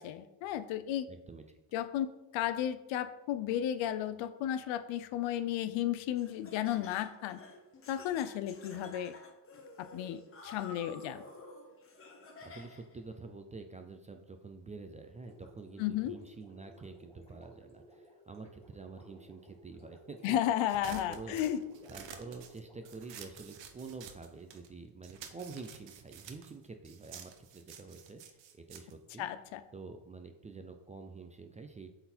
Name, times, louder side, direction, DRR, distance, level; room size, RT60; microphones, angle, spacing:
voice 1, 0.0-1.1 1.7-2.1 2.3-7.4 7.9-9.1 9.8-11.2 15.8-16.1 20.2-21.6 29.2-29.6, left 11 dB, 70° left, 11 dB, 0.7 m, -33 dB
voice 2, 1.1-1.4 12.4-20.5 20.8-21.4 21.9-29.3 29.7-31.9, right 4 dB, 15° right, 6 dB, 0.4 m, -48 dB
Laughter, 6.2-13.0, left 3 dB, 25° left, 1.1 m, -51 dB
Gurgling, 15.2-23.6, equal, 10° left, 2.2 m, -58 dB
sound 1, 20.7-24.7 25.0-29.8, right 8 dB, 60° right, 1.0 m, -51 dB
7.7 x 4.1 x 4.3 m, 0.98 s
cardioid pair, 115°, 48 cm